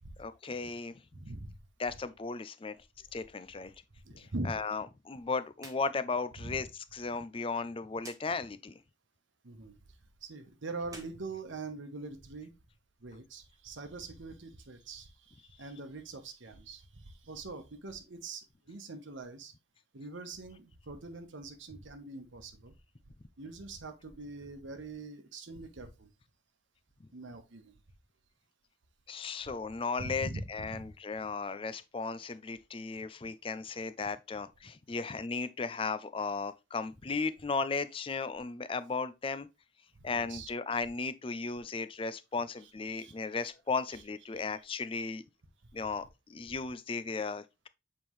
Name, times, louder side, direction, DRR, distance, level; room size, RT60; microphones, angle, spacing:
voice 1, 0.2-1.0 1.8-2.8 3.1-3.7 4.2-6.7 6.9-8.8 29.1-39.5 40.0-45.2 45.7-47.7, left 4 dB, 25° left, 0.4 m, -36 dB
voice 2, 1.1-1.6 4.0-4.6 6.4-6.6 9.4-12.5 13.0-19.5 19.9-22.7 23.4-26.1 27.1-27.7 30.0-30.8 40.1-40.5 42.6-43.1 43.9-44.0, right 3 dB, 70° right, 1.0 m, -43 dB
sound 1, 5.5-5.8 6.2-6.3 8.0-8.2 10.8-12.1, right 3 dB, 15° right, 1.2 m, -51 dB
7.4 x 4.4 x 3.1 m
head